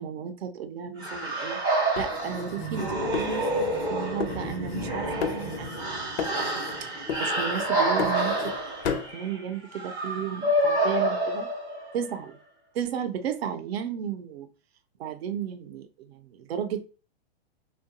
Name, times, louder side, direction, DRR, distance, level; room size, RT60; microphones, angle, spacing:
voice 1, 0.0-8.5 8.8-11.5 11.9-12.4 12.7-14.5 15.0-16.8, right 8 dB, 70° right, 10 dB, 0.6 m, -34 dB
sound 1, 1.0-12.1, right 1 dB, 10° right, 0.4 m, -28 dB
sound 2, 2.0-3.9 4.2-4.9 5.2-5.9 6.2-6.8 7.1-8.6 8.8-9.1, left 7 dB, 70° left, 0.5 m, -34 dB
2.7 x 2.2 x 2.6 m, 0.35 s
hypercardioid pair, 155°, 32 cm